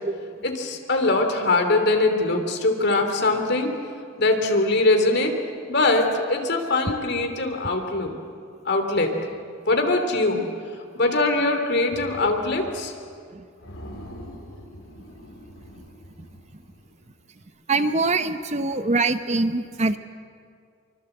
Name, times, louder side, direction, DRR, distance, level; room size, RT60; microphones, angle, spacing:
voice 1, 0.4-3.7 4.2-5.3 5.7-8.1 8.6-9.1 9.7-10.4 11.0-12.9, left 2 dB, 55° left, 5 dB, 3.1 m, -22 dB
sound 1, 11.9-12.9 13.2-13.3 13.6-17.0, equal, 80° left, 5.5 m, -43 dB
voice 2, 17.7-20.0, right 3 dB, 35° right, 10 dB, 0.9 m, -23 dB
25.5 x 24.5 x 8.0 m, 2.2 s
head